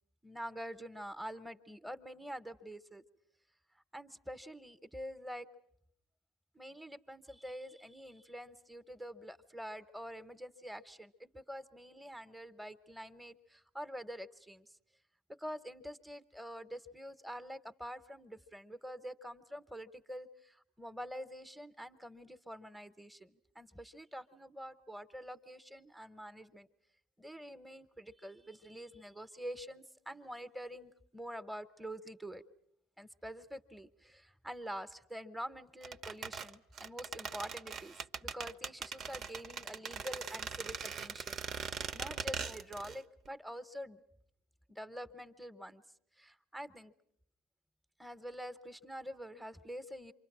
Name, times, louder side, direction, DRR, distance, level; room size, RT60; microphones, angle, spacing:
voice 1, 0.2-3.0 3.9-5.5 6.5-14.7 15.3-26.7 27.2-32.4 33.0-44.0 44.7-45.8 46.2-46.9 48.0-50.1, equal, ahead, 10 dB, 1.0 m, -46 dB
sound 1, 35.8-43.0 43.3-43.4, right 6 dB, 50° right, 0.9 m, -41 dB
27.5 x 25.0 x 6.1 m, 0.71 s
supercardioid pair, 90°, 0 cm